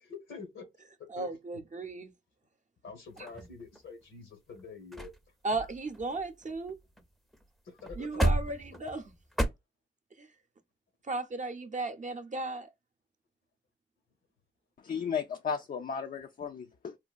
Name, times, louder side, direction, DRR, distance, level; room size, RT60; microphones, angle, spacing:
voice 1, 0.1-0.6 1.1-1.3 2.8-5.1 7.6-8.1, left 5 dB, 80° left, 1.1 m, -46 dB
voice 2, 1.1-2.1 3.3-3.4 5.4-6.8 8.0-9.1 10.2-10.3 11.0-12.7, right 2 dB, 40° right, 0.6 m, -35 dB
sound 1, 3.2-4.0 4.6-4.7 4.9-5.2 5.5-7.1 7.3-7.5 7.8-9.5, right 1 dB, ahead, 0.6 m, -33 dB
voice 3, 14.8-17.0, left 6 dB, 45° left, 0.4 m, -35 dB
3.9 x 2.2 x 2.4 m
supercardioid pair, 45°, 20 cm